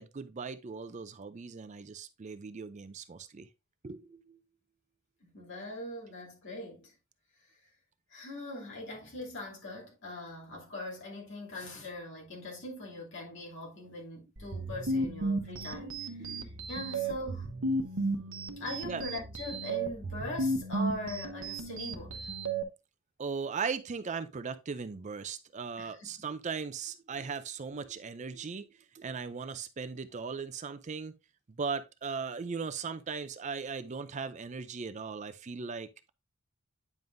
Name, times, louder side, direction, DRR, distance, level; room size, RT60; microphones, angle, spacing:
voice 1, 0.0-3.5 3.8-4.4 16.2-16.5 18.6-19.0 23.2-28.7 28.9-31.1 31.6-36.1, right 5 dB, 35° right, 0.4 m, -38 dB
voice 2, 5.2-6.9 8.1-17.5 18.6-22.3 25.8-26.3 27.7-27.8, left 1 dB, 55° left, 2.8 m, -41 dB
sound 1, 14.4-22.6, right 2 dB, 65° right, 0.9 m, -34 dB
9.2 x 5.3 x 2.6 m
head